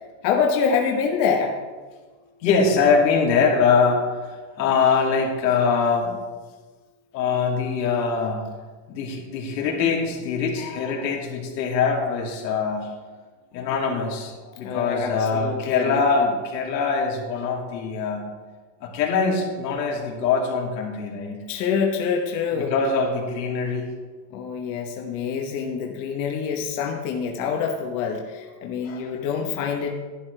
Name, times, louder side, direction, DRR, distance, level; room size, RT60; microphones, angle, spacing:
voice 1, 0.2-1.5 14.6-16.3 21.5-22.7 24.3-29.9, left 6 dB, 40° left, 1 dB, 1.2 m, -26 dB
voice 2, 2.4-6.1 7.1-8.5 8.9-12.9 13.5-18.3 18.8-21.5 22.6-23.9 28.8-29.1, left 5 dB, 90° left, -1 dB, 2.8 m, -23 dB
11.5 x 10.5 x 3.4 m, 1.4 s
supercardioid pair, 155°, 49 cm